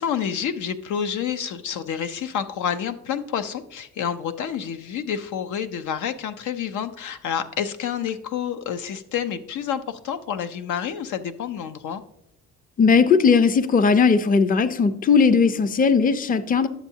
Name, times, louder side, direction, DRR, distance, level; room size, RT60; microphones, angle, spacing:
voice 1, 0.0-12.0, left 8 dB, 75° left, 10 dB, 0.6 m, -29 dB
voice 2, 12.8-16.7, left 5 dB, 30° left, 12 dB, 0.5 m, -18 dB
10.0 x 7.0 x 2.8 m, 0.81 s
cardioid pair, 90°, 30 cm